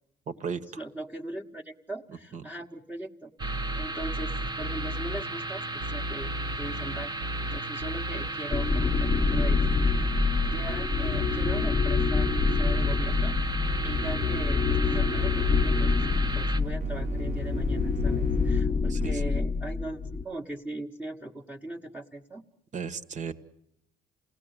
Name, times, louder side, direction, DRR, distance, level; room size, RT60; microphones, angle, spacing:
voice 1, 0.3-0.8 2.3-2.4 18.7-19.2 22.7-23.3, right 6 dB, 45° right, 11 dB, 1.6 m, -36 dB
voice 2, 0.8-3.3 3.7-7.1 7.4-9.6 10.0-10.1 10.4-13.3 13.8-15.9 16.3-22.4, right 2 dB, 10° right, 0 dB, 1.3 m, -39 dB
sound 1, 3.4-16.6, right 2 dB, 25° right, 1.2 m, -35 dB
sound 2, 3.4-5.2 5.8-8.3 8.6-11.7 12.2-18.6 19.0-19.1, equal, 65° right, 1.5 m, -35 dB
sound 3, 8.5-20.2, left 4 dB, 20° left, 0.9 m, -26 dB
28.5 x 18.0 x 8.1 m, 0.77 s
cardioid pair, 110°, 17 cm